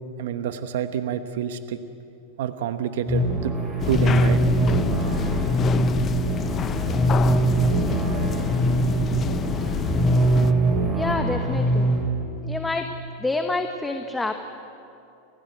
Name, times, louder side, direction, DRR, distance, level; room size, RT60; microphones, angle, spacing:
voice 1, 0.2-1.8 2.4-3.5 3.9-4.4, right 9 dB, 75° right, 9 dB, 1.1 m, -27 dB
sound 1, 3.1-12.0, right 1 dB, 10° right, 7.9 m, -22 dB
sound 2, 3.8-10.5, left 9 dB, 25° left, 0.6 m, -28 dB
voice 2, 10.9-11.9 12.4-12.9 13.2-14.3, left 2 dB, 5° left, 5 dB, 1.1 m, -27 dB
30.0 x 16.0 x 9.3 m, 2.7 s
supercardioid pair, 145°, 0 cm